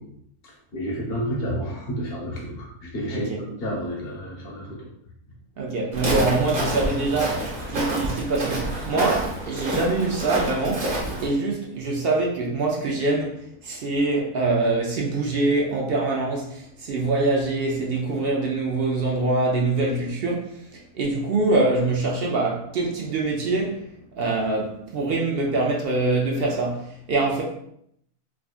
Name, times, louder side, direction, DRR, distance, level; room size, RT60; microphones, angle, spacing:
voice 1, 0.7-4.8, equal, 45° left, 1.1 m, -30 dB
voice 2, 3.1-3.5 5.6-13.4 13.6-27.4, right 2 dB, 60° right, 0.6 m, -24 dB
Walk footsteps, 5.9-11.3, right 1 dB, 40° right, 1.2 m, -28 dB
4.7 x 2.3 x 2.4 m
omnidirectional pair, 1.6 m